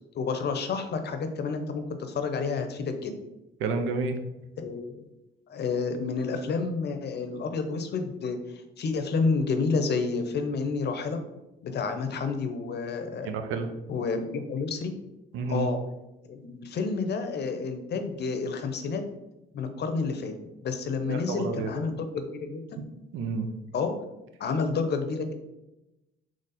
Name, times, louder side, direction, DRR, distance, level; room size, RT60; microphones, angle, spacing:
voice 1, 0.1-3.1 4.6-5.0 5.5-8.4 8.8-11.2 11.6-13.3 13.9-14.9 15.5-15.8 16.3-19.0 19.5-20.3 20.6-22.8 23.7-23.9 24.4-25.3, left 4 dB, 55° left, 7 dB, 0.7 m, -29 dB
voice 2, 3.6-4.1 13.3-13.7 15.3-15.7 21.1-21.7 23.1-23.5, right 4 dB, 85° right, 6 dB, 0.6 m, -29 dB
4.0 x 3.1 x 4.1 m, 0.96 s
cardioid pair, 90°, 20 cm